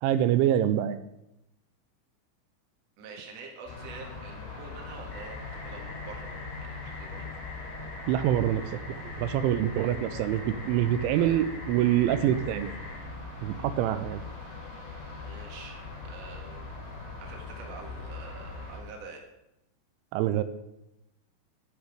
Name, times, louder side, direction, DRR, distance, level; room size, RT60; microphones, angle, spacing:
voice 1, 0.0-1.0 8.1-8.6 8.9-12.7 13.4-14.2 20.1-20.4, right 11 dB, 85° right, 12 dB, 3.0 m, -25 dB
voice 2, 3.0-6.3 6.6-7.3 11.2-11.4 15.2-15.8 16.0-16.7 17.2-19.2, right 4 dB, 50° right, 1 dB, 2.2 m, -46 dB
sound 1, 3.7-18.8, left 3 dB, 85° left, 5.8 m, -41 dB
sound 2, 5.1-13.0, left 2 dB, 40° left, 3.9 m, -45 dB
10.0 x 10.0 x 5.1 m, 0.88 s
omnidirectional pair, 5.4 m